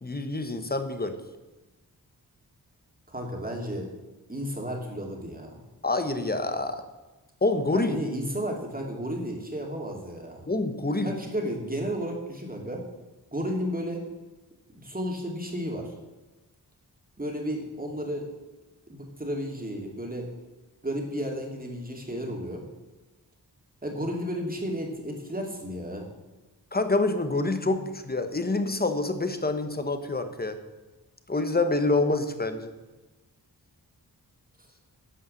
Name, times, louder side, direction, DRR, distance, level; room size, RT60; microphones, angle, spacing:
voice 1, 0.0-1.1 5.8-6.8 7.4-8.0 10.5-11.1 26.7-30.6 31.3-32.7, left 2 dB, 25° left, 8 dB, 1.2 m, -27 dB
voice 2, 3.1-3.9 4.3-5.6 7.7-10.5 11.0-12.8 13.3-14.0 14.7-15.9 17.2-18.3 18.9-20.3 20.8-22.6 23.8-26.1, equal, 20° right, 1 dB, 2.7 m, -33 dB
11.0 x 5.5 x 7.8 m, 1.1 s
cardioid pair, 65°, 39 cm